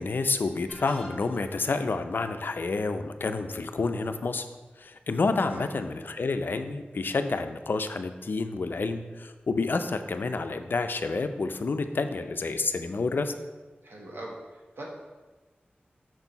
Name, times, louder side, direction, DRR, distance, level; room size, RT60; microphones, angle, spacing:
voice 1, 0.0-4.5 4.8-13.3, left 3 dB, 65° left, 8 dB, 0.4 m, -29 dB
sound 1, 0.7-1.7, left 1 dB, 15° left, 1.3 m, -47 dB
voice 2, 13.8-14.8, right 1 dB, 85° right, -1 dB, 1.2 m, -42 dB
6.1 x 4.4 x 4.0 m, 1.3 s
wide cardioid pair, 95°, 4 cm